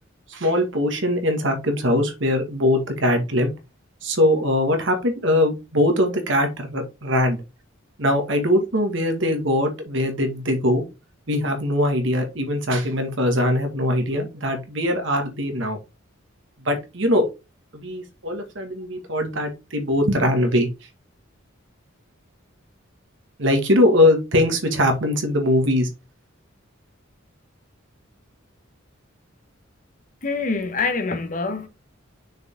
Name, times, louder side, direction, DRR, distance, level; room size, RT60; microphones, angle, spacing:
voice 1, 0.3-3.5 4.0-7.4 8.0-10.8 11.3-15.8 16.6-17.3 17.7-20.7 23.4-25.9, left 1 dB, 65° right, 1.9 m, -21 dB
voice 2, 30.2-31.7, left 4 dB, 40° left, 1.2 m, -25 dB
6.2 x 4.9 x 3.7 m
head